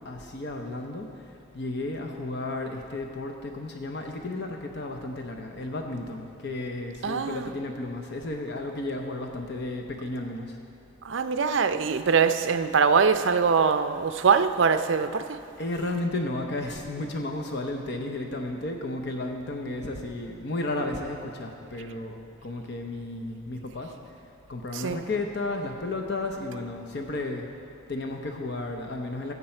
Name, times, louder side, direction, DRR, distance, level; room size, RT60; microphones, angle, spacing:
voice 1, 0.0-1.1 1.5-10.5 15.6-23.9 24.5-27.4 27.9-29.3, left 2 dB, 55° left, 0.7 m, -33 dB
voice 2, 7.0-7.5 11.0-15.4 24.7-25.0, right 5 dB, 60° right, 0.5 m, -23 dB
14.5 x 8.2 x 4.4 m
head